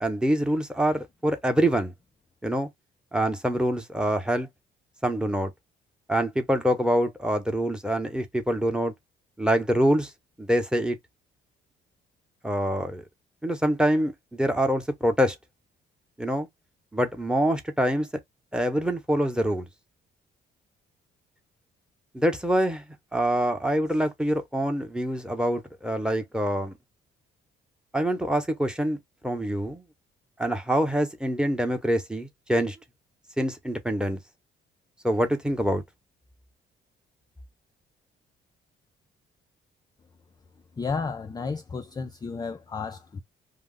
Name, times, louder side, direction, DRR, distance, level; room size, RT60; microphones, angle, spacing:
voice 1, 0.0-1.9 2.4-2.7 3.1-4.5 5.0-5.5 6.1-8.9 9.4-10.1 10.4-11.0 12.4-13.0 13.4-15.4 16.2-16.5 16.9-18.1 18.5-19.7 22.1-22.8 23.1-26.7 27.9-29.0 29.2-29.8 30.4-32.8 33.4-34.2 35.0-35.8, right 1 dB, 5° right, 0.8 m, -25 dB
voice 2, 40.7-43.2, left 4 dB, 20° left, 0.3 m, -32 dB
2.3 x 2.0 x 3.7 m
cardioid pair, 90°, 20 cm